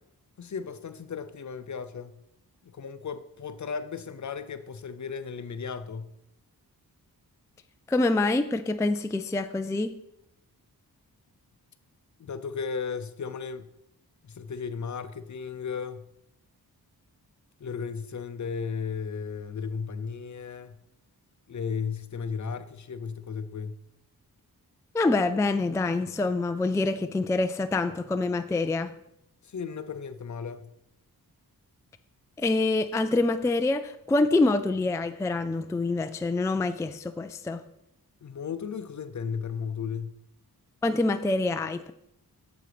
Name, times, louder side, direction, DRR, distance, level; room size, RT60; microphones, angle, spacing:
voice 1, 0.4-2.2 2.6-6.1 12.2-13.7 14.2-16.0 17.6-20.8 21.5-23.8 29.4-30.7 38.2-40.2, left 6 dB, 50° left, 0.7 m, -35 dB
voice 2, 7.9-9.9 24.9-28.9 32.4-37.6 40.8-41.9, left 2 dB, 10° left, 0.3 m, -26 dB
8.9 x 7.1 x 5.0 m
wide cardioid pair, 145°, 37 cm